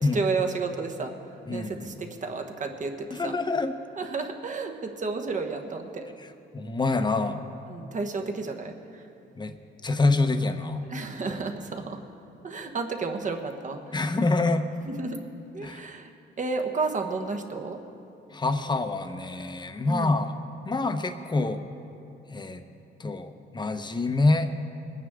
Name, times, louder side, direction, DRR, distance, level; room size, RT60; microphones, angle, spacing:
voice 1, 0.1-1.1 1.5-3.3 4.0-6.0 7.7-9.0 10.9-12.0 12.4-14.0 14.9-15.3 15.5-16.1 16.4-17.8 19.9-20.2, right 4 dB, 40° right, 4 dB, 1.3 m, -32 dB
voice 2, 1.5-1.9 3.1-3.7 6.5-7.4 9.4-9.5 9.8-10.8 13.9-14.6 15.6-15.8 18.3-20.4 20.6-21.6 22.3-22.6 23.0-24.5, left 3 dB, 20° left, 8 dB, 0.9 m, -26 dB
21.5 x 9.3 x 3.7 m, 2.7 s
cardioid pair, 90°, 20 cm